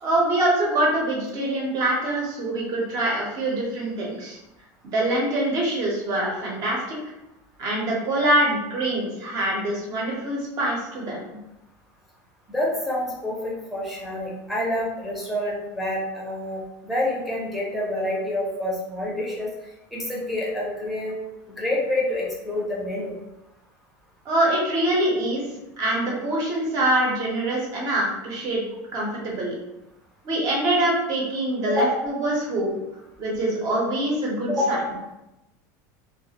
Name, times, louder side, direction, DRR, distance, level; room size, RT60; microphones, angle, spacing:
voice 1, 0.0-4.4 4.9-7.0 7.6-11.2 24.2-25.4 25.8-28.6 28.9-29.6 30.2-32.8 33.2-34.8, right 1 dB, 40° right, -3 dB, 0.8 m, -24 dB
voice 2, 12.5-19.5 19.9-21.1 21.5-23.1 31.7-32.0 34.5-34.9, left 1 dB, ahead, -5 dB, 0.6 m, -27 dB
2.4 x 2.3 x 2.8 m, 0.94 s
supercardioid pair, 155°, 9 cm